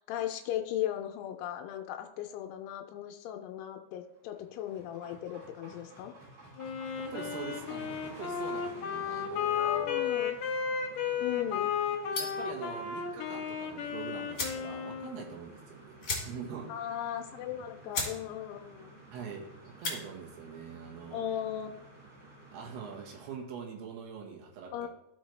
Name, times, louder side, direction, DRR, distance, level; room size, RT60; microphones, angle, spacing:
voice 1, 0.1-6.1 9.6-10.4 11.2-11.7 16.7-19.0 21.1-21.8 24.7-24.9, left 11 dB, 85° left, 3 dB, 2.6 m, -37 dB
sound 1, 4.0-23.4, right 2 dB, 55° right, 4.7 m, -53 dB
Wind instrument woodwind instrument, 6.6-15.4, left 7 dB, 70° left, 2.3 m, -34 dB
voice 2, 7.0-9.9 12.2-16.7 19.1-21.3 22.5-24.9, right 6 dB, 80° right, 0 dB, 3.3 m, -44 dB
sound 2, 12.1-12.5 13.8-13.9 14.3-14.7 15.0-15.1 15.4-15.5 16.0-16.6 17.0-17.1 17.5-17.6 17.9-18.2 18.5-18.9 19.6-20.0, left 3 dB, 30° left, 2.1 m, -35 dB
13.5 x 5.3 x 3.2 m, 0.85 s
omnidirectional pair, 4.7 m